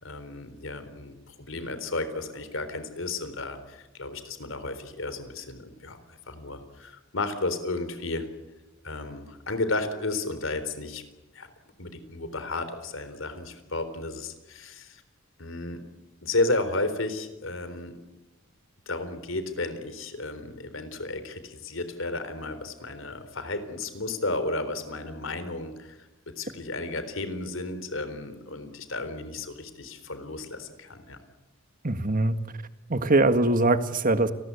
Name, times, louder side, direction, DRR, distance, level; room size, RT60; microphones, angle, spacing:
voice 1, 0.0-6.0 6.3-8.3 8.8-11.0 11.3-11.5 11.8-15.0 15.4-15.9 16.2-18.0 18.9-26.0 26.4-31.2, left 2 dB, 70° left, 11 dB, 3.9 m, -33 dB
voice 2, 31.8-32.4 32.9-34.3, right 2 dB, 45° right, 10 dB, 1.7 m, -22 dB
29.5 x 20.5 x 8.4 m, 1.1 s
head